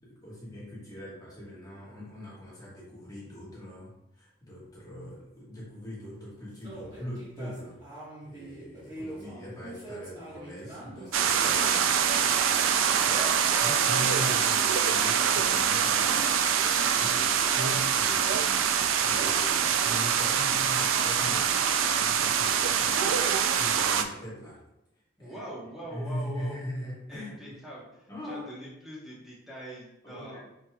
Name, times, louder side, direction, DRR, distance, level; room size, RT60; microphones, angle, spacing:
voice 1, 0.0-7.8 8.2-23.1 23.5-24.6 25.2-25.5 25.9-27.6 28.1-28.5 30.0-30.4, equal, 20° left, -7 dB, 1.3 m, -41 dB
sound 1, 6.6-12.5 13.0-16.7, right 1 dB, 20° right, 1.4 m, -45 dB
sound 2, 11.1-24.0, right 8 dB, 80° right, 0.4 m, -24 dB
voice 2, 25.2-26.6 27.1-30.4, equal, ahead, -7 dB, 1.1 m, -43 dB
4.6 x 4.1 x 2.3 m, 0.85 s
head